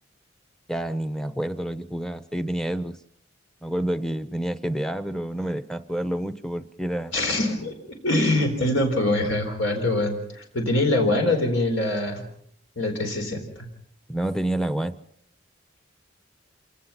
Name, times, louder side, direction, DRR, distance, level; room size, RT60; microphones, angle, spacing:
voice 1, 0.7-3.0 3.6-7.1 14.1-15.0, right 1 dB, 5° left, 11 dB, 0.8 m, -28 dB
voice 2, 7.1-12.2 12.8-13.7, left 1 dB, 75° left, 4 dB, 4.2 m, -24 dB
27.5 x 18.0 x 5.9 m, 0.70 s
head